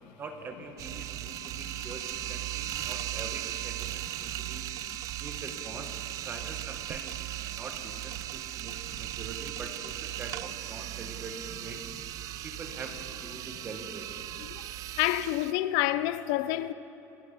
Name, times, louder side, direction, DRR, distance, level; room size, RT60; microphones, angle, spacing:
voice 1, 0.2-4.7 5.2-6.0 6.2-7.1 7.4-11.8 12.4-14.1, right 3 dB, 25° right, 1.6 m, -44 dB
sound 1, 0.8-15.5, right 14 dB, 45° right, 0.4 m, -37 dB
voice 2, 15.0-16.7, left 15 dB, 75° left, 0.5 m, -28 dB
26.5 x 9.4 x 5.6 m
cardioid pair, 145°, 8 cm